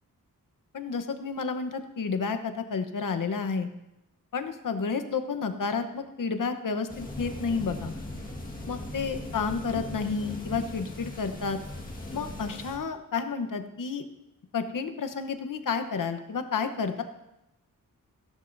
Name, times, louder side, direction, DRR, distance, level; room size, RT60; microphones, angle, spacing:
voice 1, 0.7-3.7 4.3-7.9 8.7-11.6 12.1-14.0 14.5-17.0, left 5 dB, 65° left, 8 dB, 1.0 m, -31 dB
sound 1, 6.9-12.8, left 1 dB, 25° left, 1.7 m, -39 dB
16.5 x 13.0 x 2.7 m, 0.91 s
wide cardioid pair, 135°, 34 cm